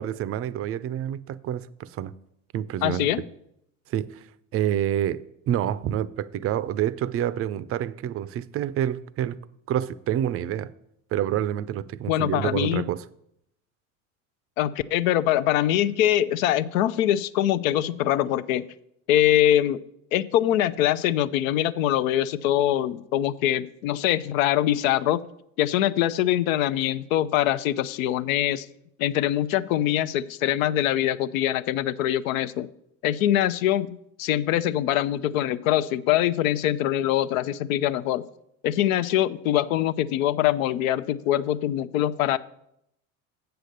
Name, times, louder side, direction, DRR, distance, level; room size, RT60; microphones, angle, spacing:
voice 1, 0.0-2.1 2.5-3.1 3.9-4.3 4.5-9.4 9.7-10.7 11.1-13.0, right 11 dB, 35° right, 0.5 m, -28 dB
voice 2, 2.8-3.2 12.1-12.9 14.6-18.7 19.1-19.8 20.1-25.2 25.6-28.7 29.0-32.7 33.0-38.2 38.6-42.4, left 12 dB, 75° left, 0.6 m, -23 dB
7.8 x 6.9 x 6.5 m
hypercardioid pair, 80°, 41 cm